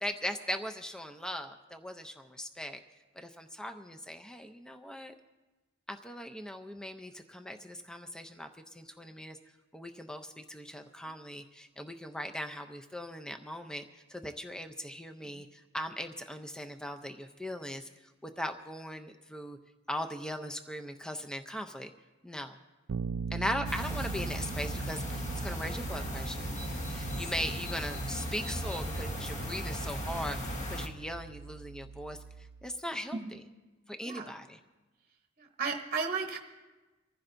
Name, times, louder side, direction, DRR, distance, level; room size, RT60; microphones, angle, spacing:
voice 1, 0.0-2.8 3.2-5.1 5.9-9.4 9.7-13.8 14.1-17.9 18.2-19.6 19.9-21.9 22.2-22.5 23.3-26.5 26.9-32.2 32.6-33.4 33.9-34.6, equal, 5° left, 6 dB, 0.5 m, -39 dB
Bass guitar, 22.9-32.7, right 5 dB, 80° right, 0.4 m, -41 dB
sound 1, 23.6-30.9, equal, 35° left, 1.2 m, -37 dB
voice 2, 34.0-34.3 35.4-36.4, right 5 dB, 35° right, 3 dB, 0.9 m, -34 dB
24.5 x 15.0 x 2.6 m, 1.2 s
head